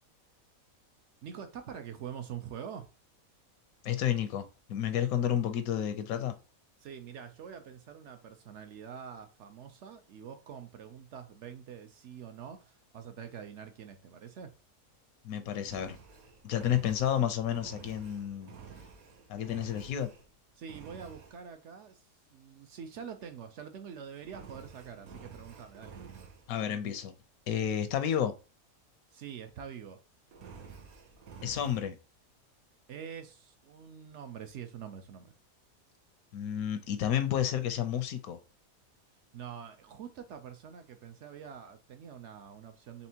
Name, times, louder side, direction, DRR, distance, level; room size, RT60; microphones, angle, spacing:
voice 1, 1.2-2.9 6.8-14.6 20.6-26.0 29.1-30.0 32.9-35.3 39.3-43.1, right 7 dB, 65° right, 0.8 m, -45 dB
voice 2, 3.8-6.4 15.2-16.0 16.4-18.5 19.3-20.1 26.5-27.1 27.5-28.3 31.4-32.0 36.3-38.4, left 10 dB, 85° left, 1.1 m, -31 dB
Engine, 15.6-20.3 20.7-21.4 24.2-26.5 30.3-31.9, right 5 dB, 80° right, 1.3 m, -50 dB
4.2 x 3.5 x 2.8 m
omnidirectional pair, 1.5 m